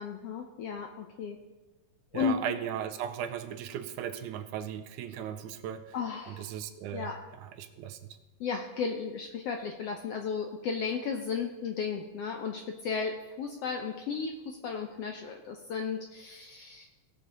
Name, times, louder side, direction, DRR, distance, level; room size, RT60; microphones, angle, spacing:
voice 1, 0.0-1.4 2.1-2.4 5.9-6.5 6.9-7.2 8.4-16.9, left 6 dB, 75° left, 3 dB, 1.4 m, -34 dB
voice 2, 2.1-6.0 6.3-8.2, right 9 dB, 80° right, 8 dB, 2.1 m, -37 dB
17.5 x 6.5 x 3.9 m, 1.2 s
omnidirectional pair, 3.5 m